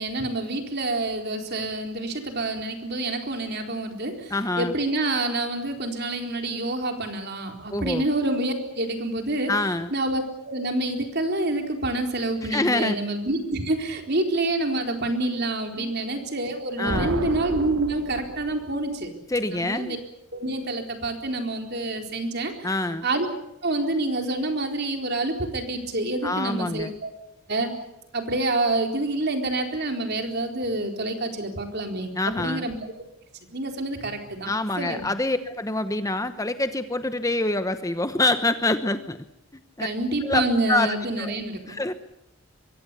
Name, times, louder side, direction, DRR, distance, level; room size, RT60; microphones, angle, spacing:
voice 1, 0.0-9.5 9.9-19.1 19.5-20.0 20.3-22.7 23.0-23.3 23.6-27.1 27.5-27.7 28.1-32.8 33.5-35.1 39.8-41.8, right 2 dB, 50° right, 4 dB, 4.2 m, -27 dB
voice 2, 4.3-4.7 7.7-8.0 9.5-9.9 12.4-13.0 15.8-15.9 16.8-17.1 19.3-20.0 22.6-23.0 26.2-26.9 32.2-32.7 34.5-39.2 39.5-39.9 40.2-40.4 40.7-41.3 41.7-41.9, left 2 dB, 15° left, 10 dB, 0.9 m, -26 dB
sound 1, 16.8-18.8, right 2 dB, 80° right, 2.1 m, -32 dB
24.5 x 23.5 x 6.9 m, 0.86 s
head